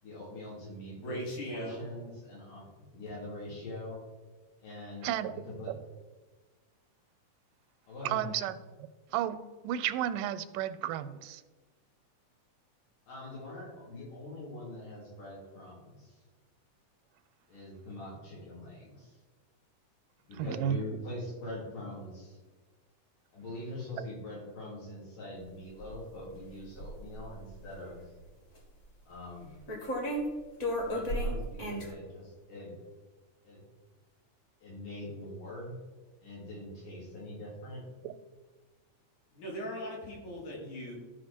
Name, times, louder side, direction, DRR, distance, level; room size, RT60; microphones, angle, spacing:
voice 1, 0.0-1.2 1.5-4.0 4.6-5.7 7.9-8.3 13.1-16.2 17.5-19.2 20.3-22.4 23.3-28.0 29.0-29.7 30.8-32.7 33.4-33.6 34.6-35.7 36.2-37.8, left 1 dB, 90° left, -6 dB, 5.1 m, -43 dB
voice 2, 0.9-1.9 39.3-41.0, equal, 65° left, -3 dB, 3.6 m, -39 dB
voice 3, 5.0-5.4 5.7-5.8 8.1-8.6 9.1-11.4 20.4-20.8 38.0-38.1, right 11 dB, 90° right, 12 dB, 2.2 m, -32 dB
sound 1, 25.8-26.0 26.3-27.3 28.6-28.7 29.7-30.3 30.6-31.9, equal, 35° left, 1.4 m, -33 dB
13.5 x 5.1 x 4.4 m, 1.3 s
omnidirectional pair, 3.7 m